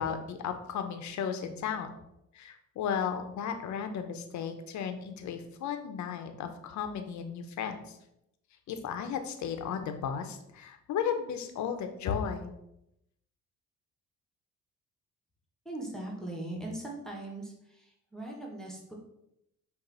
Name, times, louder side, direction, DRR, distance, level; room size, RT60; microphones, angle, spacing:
voice 1, 0.0-1.9 2.4-7.8 8.7-12.5, left 7 dB, 70° left, 7 dB, 0.7 m, -34 dB
voice 2, 15.6-17.5 18.1-18.9, right 1 dB, ahead, -1 dB, 1.1 m, -39 dB
5.4 x 2.6 x 3.8 m, 0.82 s
cardioid pair, 90°, 30 cm